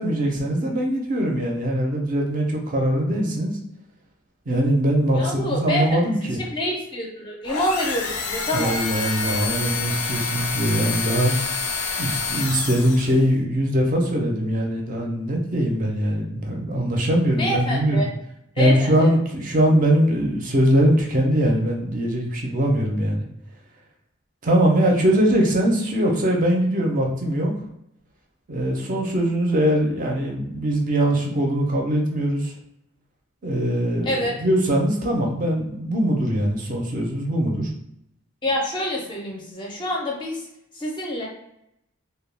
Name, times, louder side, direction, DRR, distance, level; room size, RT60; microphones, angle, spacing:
voice 1, 0.0-3.5 4.5-6.4 8.5-11.3 12.0-18.0 18.6-23.2 24.4-27.5 28.5-32.5 33.4-37.7, right 1 dB, 35° right, 0 dB, 0.4 m, -21 dB
voice 2, 5.1-6.0 6.4-8.8 17.4-18.1 18.6-19.1 34.0-34.4 38.4-40.4 40.7-41.3, left 1 dB, 20° left, -1 dB, 0.4 m, -26 dB
sound 1, 7.4-13.3, left 4 dB, 85° left, 0.4 m, -28 dB
2.2 x 2.1 x 3.2 m, 0.80 s
head